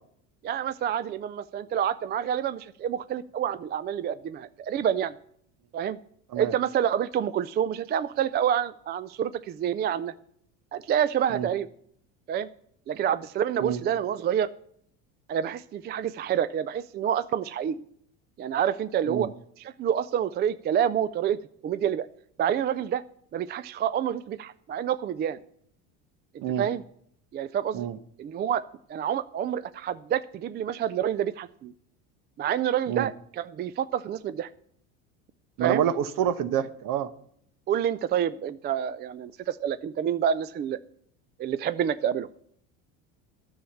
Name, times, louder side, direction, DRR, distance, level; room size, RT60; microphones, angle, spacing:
voice 1, 0.4-5.1 5.7-6.0 6.4-10.1 10.7-11.7 12.3-12.5 12.9-14.5 15.3-17.8 18.4-19.3 19.6-22.1 22.4-23.0 23.3-25.4 26.6-26.8 27.3-27.9 28.2-28.6 28.9-31.7 32.4-34.5 35.6-35.8 37.7-40.8 41.4-42.3, right 9 dB, 25° right, 16 dB, 0.3 m, -28 dB
voice 2, 35.6-37.1, right 9 dB, 50° right, 14 dB, 1.1 m, -27 dB
10.0 x 7.2 x 7.0 m, 0.67 s
supercardioid pair, 95°, 41 cm